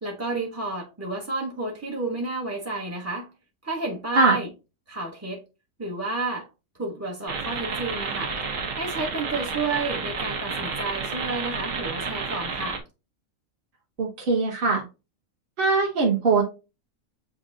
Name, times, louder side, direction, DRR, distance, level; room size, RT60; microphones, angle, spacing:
voice 1, 0.0-3.3 3.6-4.5 4.9-5.4 5.8-6.5 6.8-8.3 8.8-12.8, right 3 dB, 20° right, 0.5 m, -30 dB
sound 1, 7.3-12.8, right 4 dB, 70° right, 1.3 m, -31 dB
voice 2, 14.0-14.8 15.6-16.4, right 3 dB, 45° right, 1.1 m, -21 dB
7.6 x 2.6 x 2.5 m
omnidirectional pair, 1.4 m